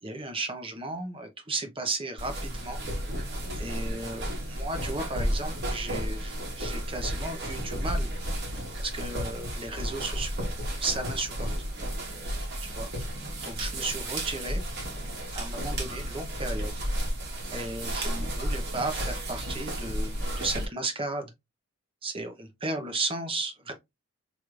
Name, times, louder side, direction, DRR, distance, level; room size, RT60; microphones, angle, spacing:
voice 1, 0.0-2.8 3.6-8.1 8.8-10.3 10.8-11.5 12.8-14.6 15.3-16.7 17.5-21.3 22.0-23.7, right 2 dB, 25° right, 0.9 m, -34 dB
sound 1, 2.2-20.7, equal, 50° right, 1.5 m, -33 dB
4.7 x 3.2 x 2.5 m
head